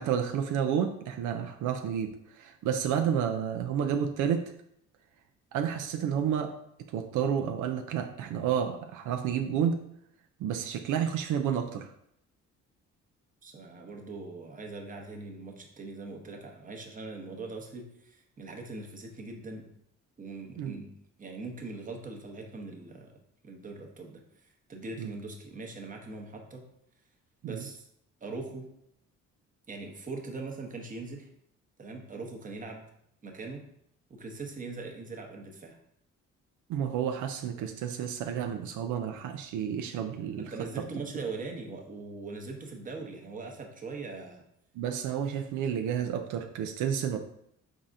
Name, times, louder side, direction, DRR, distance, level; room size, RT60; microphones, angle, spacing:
voice 1, 0.0-4.5 5.5-6.5 6.9-9.8 10.4-11.9 20.6-20.8 25.0-25.1 27.4-27.6 36.7-40.5 44.8-47.2, right 8 dB, 80° right, 4 dB, 0.4 m, -30 dB
voice 2, 13.4-19.7 20.2-20.9 21.2-23.1 23.4-26.6 27.4-27.9 28.2-28.7 29.7-31.3 31.8-32.8 33.2-33.6 34.1-35.8 40.4-44.4, right 3 dB, 25° right, 2 dB, 0.8 m, -41 dB
4.1 x 3.6 x 2.5 m, 0.74 s
cardioid pair, 90°, 30 cm